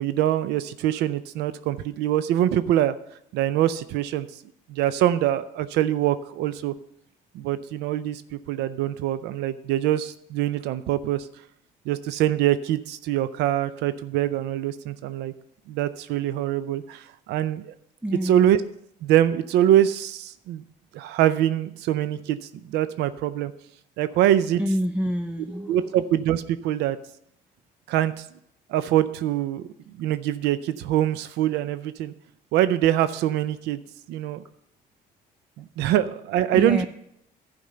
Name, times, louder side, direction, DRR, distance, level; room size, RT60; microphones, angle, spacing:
voice 1, 0.0-2.9 3.3-4.3 4.7-6.7 7.3-8.2 8.5-11.3 11.9-15.3 15.7-17.7 18.2-18.6 19.0-20.6 20.9-22.4 22.7-23.5 24.0-24.6 25.7-27.0 27.9-28.1 28.7-29.6 30.0-32.1 32.5-33.8 34.1-34.4 35.6-36.8, right 12 dB, 85° right, 14 dB, 0.5 m, -24 dB
voice 2, 18.0-18.5 24.6-26.0 35.6-35.7 36.5-36.8, equal, 5° right, 8 dB, 0.5 m, -27 dB
11.5 x 5.2 x 6.7 m, 0.76 s
cardioid pair, 110°, 17 cm